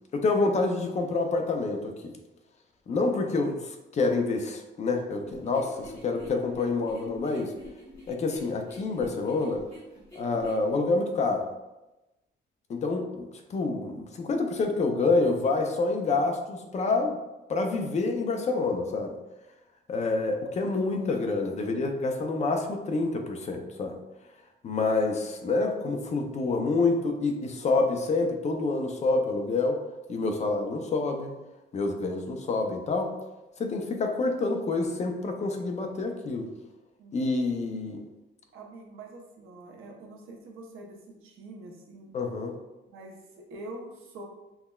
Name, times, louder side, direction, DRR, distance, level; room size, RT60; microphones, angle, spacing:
voice 1, 0.1-2.1 2.9-7.5 8.1-9.6 10.1-11.5 12.7-17.2 17.5-19.1 19.9-24.0 24.6-29.8 30.1-31.3 31.7-33.1 33.6-36.5 37.1-38.0 42.1-42.5, left 3 dB, 35° left, 4 dB, 0.4 m, -27 dB
sound 1, 5.2-10.7, left 1 dB, 15° left, 1.0 m, -47 dB
voice 2, 37.0-37.7 38.5-42.1 42.9-44.2, right 2 dB, 85° right, 0 dB, 0.7 m, -45 dB
5.5 x 2.1 x 2.2 m, 1.0 s
wide cardioid pair, 170°, 21 cm